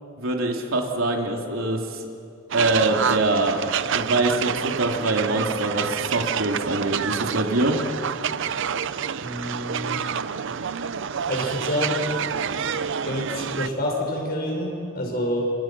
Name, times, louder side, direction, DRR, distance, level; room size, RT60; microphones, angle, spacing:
voice 1, 0.2-2.0 2.5-3.6 3.9-7.8, right 2 dB, 90° right, 1 dB, 3.1 m, -24 dB
sound 1, 2.5-13.7, right 7 dB, 65° right, 0.6 m, -28 dB
voice 2, 9.2-10.0 11.3-12.3 13.0-15.5, equal, 50° left, 0 dB, 6.4 m, -27 dB
29.0 x 26.5 x 6.1 m, 2.6 s
head